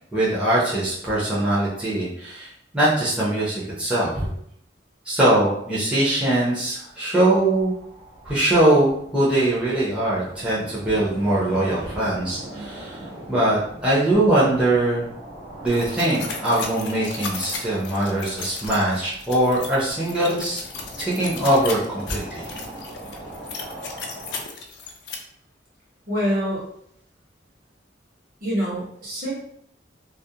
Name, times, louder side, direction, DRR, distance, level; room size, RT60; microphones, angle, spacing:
voice 1, 0.1-4.3 5.0-7.7 8.2-15.1 15.6-20.6 21.0-22.4, right 1 dB, 5° right, -9 dB, 0.5 m, -22 dB
sound 1, 7.3-24.4, right 1 dB, 75° right, 1.0 m, -40 dB
sound 2, 15.7-25.1, left 5 dB, 70° left, 0.4 m, -35 dB
voice 2, 26.1-26.6 28.4-29.3, equal, 50° right, -5 dB, 0.9 m, -25 dB
2.3 x 2.0 x 2.7 m, 0.71 s
head